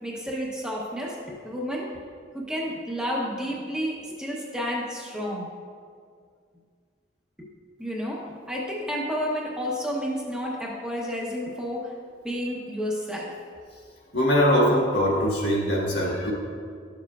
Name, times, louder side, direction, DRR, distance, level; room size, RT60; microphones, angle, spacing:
voice 1, 0.0-2.0 2.3-5.5 7.4-7.5 7.8-11.9 12.2-13.3, equal, 5° right, -3 dB, 0.9 m, -31 dB
voice 2, 14.1-16.3, equal, 70° left, -4 dB, 1.6 m, -22 dB
11.0 x 6.8 x 2.4 m, 2.1 s
head